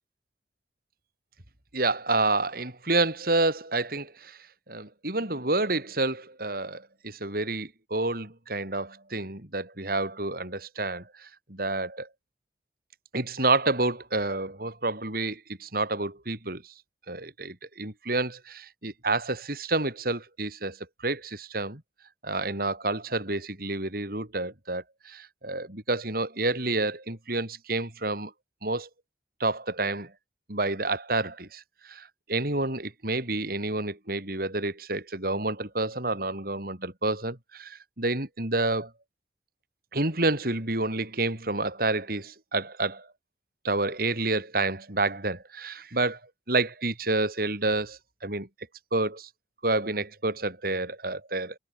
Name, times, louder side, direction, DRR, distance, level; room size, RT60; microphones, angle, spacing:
voice 1, 1.7-4.4 4.7-12.1 13.1-16.6 17.1-21.8 22.2-28.3 28.6-28.9 29.4-30.1 30.5-38.9 39.9-43.1 43.6-46.2 46.5-48.5 48.9-49.3 49.6-51.5, right 2 dB, 55° right, 4.7 m, -29 dB
head